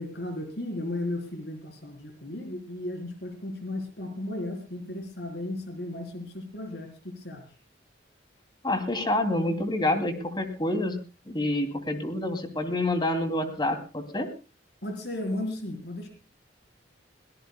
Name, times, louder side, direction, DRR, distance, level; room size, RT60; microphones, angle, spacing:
voice 1, 0.0-7.4 14.8-16.1, left 1 dB, 65° left, 4 dB, 4.0 m, -35 dB
voice 2, 8.6-11.0 11.3-14.3, left 1 dB, 25° left, 7 dB, 2.7 m, -27 dB
23.0 x 17.5 x 2.2 m, 0.33 s
head